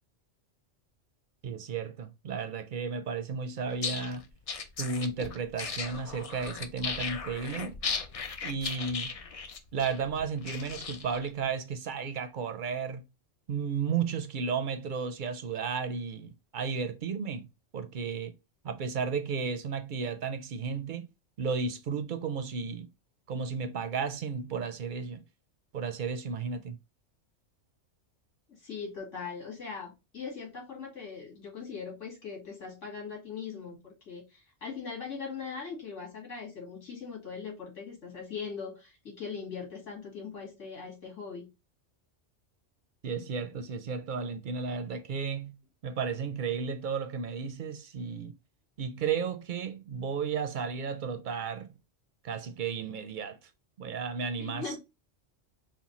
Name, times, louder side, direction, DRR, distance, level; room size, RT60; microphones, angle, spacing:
voice 1, 1.4-4.3 4.8-7.8 8.4-9.1 9.7-13.0 13.5-17.5 17.7-18.3 18.6-21.1 21.4-22.9 23.3-25.2 25.7-26.8 43.0-45.6 45.8-48.3 48.8-51.7 52.2-53.5 53.8-54.7, right 5 dB, 55° right, 0.5 m, -33 dB
sound 1, 3.7-11.3, left 5 dB, 50° left, 0.4 m, -37 dB
voice 2, 28.5-41.5 54.4-54.8, left 5 dB, 85° left, 2.4 m, -40 dB
4.4 x 2.1 x 4.1 m
omnidirectional pair, 1.2 m